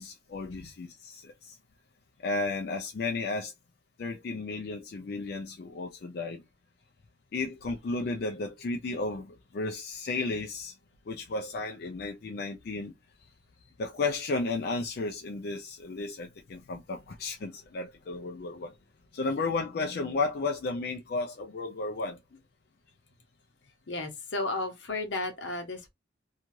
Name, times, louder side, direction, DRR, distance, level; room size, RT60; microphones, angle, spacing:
voice 1, 0.0-1.6 2.2-3.5 4.0-6.4 7.3-10.7 11.1-12.9 13.8-18.7 19.1-22.2, left 3 dB, 55° left, 0.4 m, -33 dB
voice 2, 23.9-25.9, left 2 dB, 80° left, 0.9 m, -33 dB
2.6 x 2.3 x 3.0 m
head